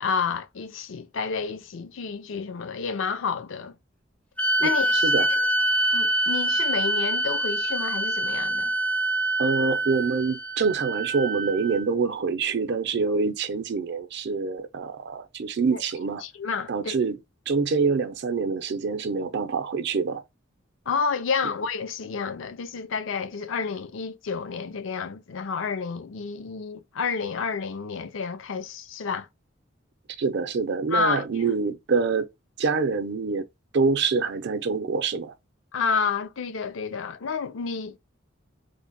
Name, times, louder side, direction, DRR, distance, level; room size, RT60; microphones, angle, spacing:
voice 1, 0.0-3.8 4.6-5.1 5.9-8.7 15.7-15.8 16.2-16.9 20.9-29.3 30.9-31.4 35.7-38.0, left 5 dB, 70° left, 0.5 m, -30 dB
sound 1, 4.4-11.9, right 1 dB, 5° left, 0.3 m, -25 dB
voice 2, 4.6-5.5 9.4-16.2 16.7-17.2 17.5-20.2 30.2-32.3 32.6-33.4 33.7-35.3, right 4 dB, 60° right, 0.5 m, -26 dB
3.2 x 2.1 x 3.9 m
head